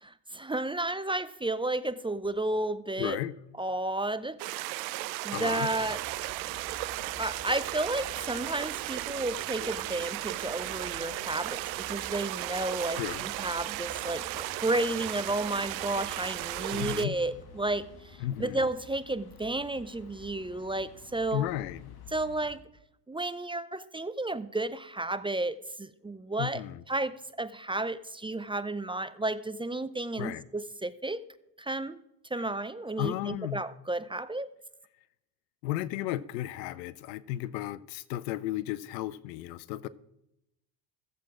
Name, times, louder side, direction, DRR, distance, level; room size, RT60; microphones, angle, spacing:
voice 1, 0.0-3.2 3.6-4.4 5.2-6.0 7.2-17.9 18.4-21.5 22.1-22.6 23.1-26.6 26.9-31.2 31.6-32.0 32.3-34.5, right 2 dB, 10° right, 0.5 m, -32 dB
voice 2, 3.0-3.3 5.3-5.7 12.9-13.3 16.7-17.2 18.2-18.6 21.3-22.0 26.4-26.8 30.2-30.5 32.4-32.5 33.0-33.6 35.6-39.9, left 14 dB, 85° left, 0.7 m, -34 dB
sound 1, 4.4-17.1, right 19 dB, 85° right, 0.6 m, -35 dB
sound 2, 5.6-22.6, left 5 dB, 50° left, 1.6 m, -51 dB
15.0 x 7.6 x 4.8 m
hypercardioid pair, 70°, 49 cm